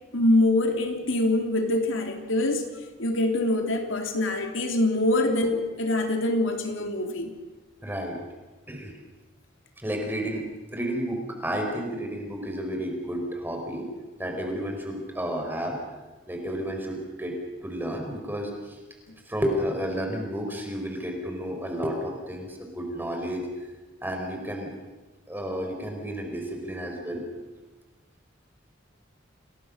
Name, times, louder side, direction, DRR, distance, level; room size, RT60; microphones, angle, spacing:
voice 1, 0.1-2.7 3.0-7.3, left 1 dB, 80° left, 4 dB, 3.4 m, -24 dB
voice 2, 7.8-8.2 8.7-8.9 9.8-10.4 10.7-13.9 14.2-15.8 16.3-17.3 17.6-18.8 19.3-23.4 24.0-24.7 25.3-27.2, equal, 10° right, 2 dB, 4.7 m, -31 dB
28.5 x 20.0 x 6.7 m, 1.2 s
head